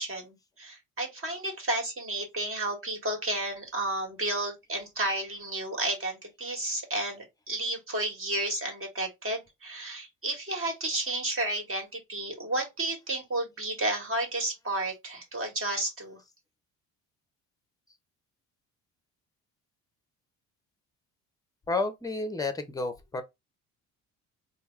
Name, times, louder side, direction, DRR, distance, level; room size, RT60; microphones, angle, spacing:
voice 1, 0.0-16.2, right 2 dB, 35° right, 1.7 m, -32 dB
voice 2, 21.7-23.2, left 3 dB, 10° left, 0.8 m, -31 dB
3.3 x 2.2 x 3.2 m
hypercardioid pair, 60°, 40 cm